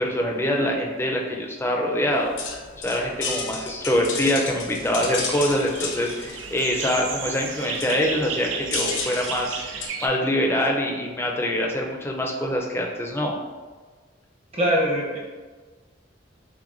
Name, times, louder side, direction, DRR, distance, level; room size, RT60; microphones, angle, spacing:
voice 1, 0.0-13.3, left 1 dB, 15° left, 0 dB, 0.4 m, -25 dB
sound 1, 2.1-9.9, left 4 dB, 80° left, 0.6 m, -33 dB
sound 2, 5.0-10.1, right 6 dB, 90° right, 0.4 m, -33 dB
voice 2, 14.5-15.2, equal, 35° right, -4 dB, 0.8 m, -22 dB
5.9 x 2.2 x 2.5 m, 1.4 s
head